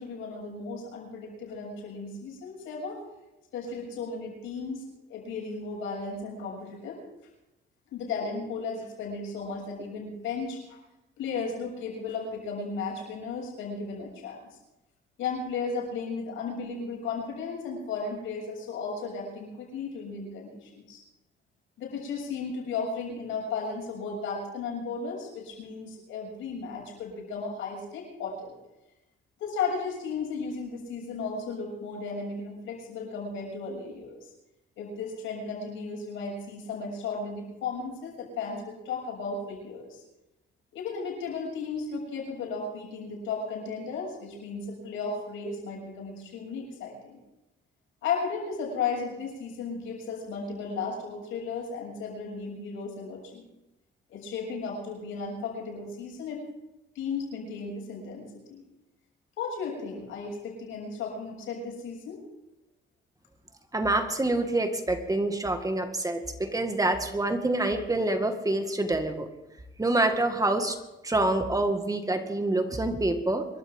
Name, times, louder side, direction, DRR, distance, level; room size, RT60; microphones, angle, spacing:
voice 1, 0.0-3.0 3.5-7.0 7.9-10.8 11.2-14.6 15.2-21.0 21.8-28.6 29.4-34.3 34.8-40.0 40.7-47.2 48.0-53.4 54.1-56.4 56.9-58.6 59.4-62.2, left 4 dB, 85° left, -1 dB, 7.2 m, -35 dB
voice 2, 63.7-69.3 69.8-70.8 71.0-73.5, right 2 dB, 15° right, 6 dB, 2.0 m, -26 dB
25.5 x 13.5 x 3.8 m, 0.95 s
cardioid pair, 90°, 20 cm